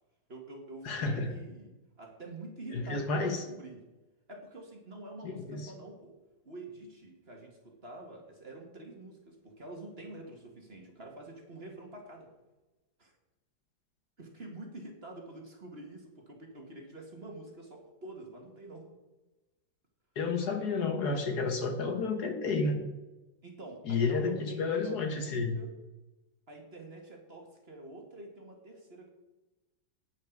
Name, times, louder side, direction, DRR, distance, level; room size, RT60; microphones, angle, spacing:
voice 1, 0.3-1.7 2.0-3.8 4.3-6.1 6.4-12.3 13.0-13.1 14.2-18.9 23.4-25.7 26.5-29.1, right 2 dB, 35° right, 1 dB, 2.0 m, -47 dB
voice 2, 0.9-1.3 2.7-3.4 5.2-5.7 20.2-22.8 23.9-25.6, left 4 dB, 60° left, 5 dB, 1.7 m, -31 dB
10.5 x 9.6 x 4.7 m, 1.1 s
omnidirectional pair, 2.0 m